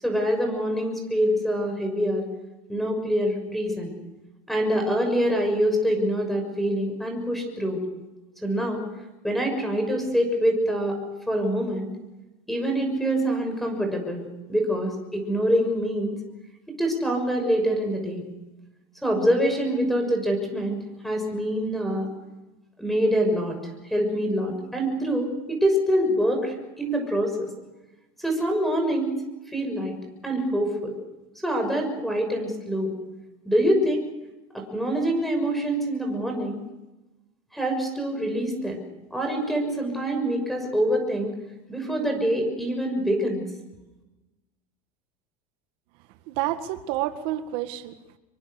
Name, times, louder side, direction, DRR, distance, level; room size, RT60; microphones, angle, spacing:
voice 1, 0.0-2.2 2.7-3.9 4.5-7.8 8.4-8.8 9.2-11.0 11.3-11.9 12.5-14.2 14.5-16.1 16.7-18.2 19.0-22.1 22.8-23.6 23.8-27.5 28.2-29.1 29.5-29.9 30.2-30.9 31.4-32.9 33.4-34.0 34.5-36.6 37.5-38.8 39.1-41.3 41.7-43.4, equal, ahead, 4 dB, 6.6 m, -25 dB
voice 2, 46.3-48.2, right 13 dB, 65° right, 8 dB, 2.0 m, -29 dB
27.0 x 23.5 x 6.7 m, 1.0 s
supercardioid pair, 140°, 19 cm